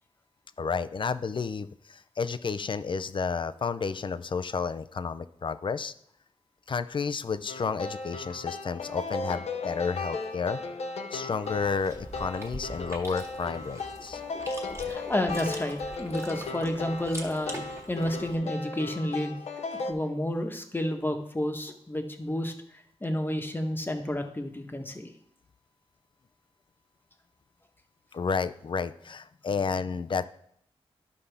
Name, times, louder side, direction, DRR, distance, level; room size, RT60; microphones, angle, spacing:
voice 1, 0.6-5.9 6.7-10.6 11.1-14.2 28.1-30.3, left 5 dB, 50° left, 12 dB, 0.5 m, -31 dB
sound 1, 7.5-19.9, left 3 dB, 90° left, 0.7 m, -36 dB
Chewing mastication, 11.4-18.3, right 1 dB, 25° right, 1.9 m, -44 dB
voice 2, 14.7-19.4 19.9-22.5 23.0-25.1, left 1 dB, 20° left, 4 dB, 1.2 m, -30 dB
12.0 x 5.5 x 3.4 m, 0.70 s
cardioid pair, 70°, 11 cm